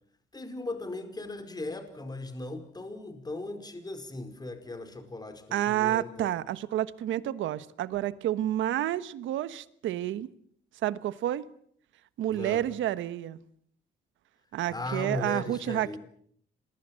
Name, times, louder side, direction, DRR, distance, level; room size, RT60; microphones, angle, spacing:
voice 1, 0.3-6.3 12.3-12.6 14.7-16.0, left 2 dB, 20° left, 5.0 m, -37 dB
voice 2, 5.5-10.3 10.8-11.5 12.2-13.4 14.5-16.0, right 13 dB, 85° right, 1.4 m, -30 dB
27.5 x 21.5 x 7.7 m
cardioid pair, 90°, 19 cm